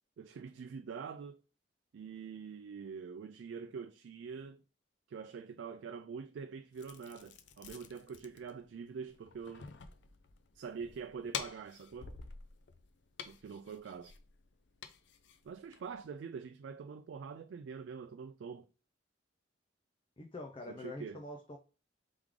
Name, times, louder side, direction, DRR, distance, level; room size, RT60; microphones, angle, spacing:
voice 1, 0.2-1.4 1.9-4.6 5.1-9.7 10.6-12.2 13.2-14.1 15.5-18.7 20.7-21.2, right 6 dB, 85° right, 0.3 m, -45 dB
sound 1, 6.7-16.1, left 7 dB, 75° left, 0.5 m, -49 dB
voice 2, 20.2-21.6, left 2 dB, 30° left, 0.5 m, -45 dB
3.5 x 3.2 x 3.6 m
head